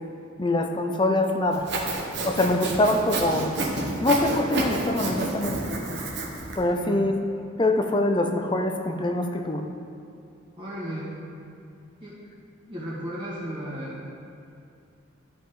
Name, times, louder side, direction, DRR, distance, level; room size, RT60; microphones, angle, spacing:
voice 1, 0.4-1.6 2.2-3.5 4.0-5.6 6.6-7.1 7.6-9.6, left 1 dB, 25° left, 5 dB, 0.5 m, -24 dB
Sawing, 1.5-6.6, right 2 dB, 60° right, 1.1 m, -29 dB
voice 2, 6.7-7.1 10.6-11.2 12.0-12.2 12.7-14.1, equal, 25° right, -9 dB, 1.9 m, -35 dB
12.5 x 5.2 x 3.8 m, 2.6 s
head